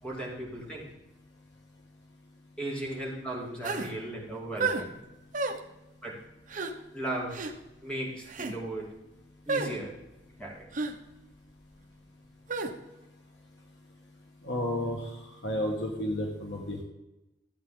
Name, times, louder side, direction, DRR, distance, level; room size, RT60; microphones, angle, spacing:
voice 1, 0.0-0.9 2.6-5.0 6.0-6.1 6.9-7.4 7.8-8.9 9.5-9.9 10.4-10.7, right 1 dB, 5° left, -3 dB, 2.8 m, -36 dB
sound 1, 3.6-3.9 4.6-4.8 5.3-5.6 6.5-6.7 7.3-7.5 8.3-8.5 9.5-9.7 10.7-10.9 12.5-12.7, right 4 dB, 45° right, 1.0 m, -30 dB
voice 2, 14.4-15.2 15.4-16.8, left 1 dB, 80° left, 1 dB, 1.5 m, -31 dB
14.0 x 8.4 x 3.8 m, 0.97 s
head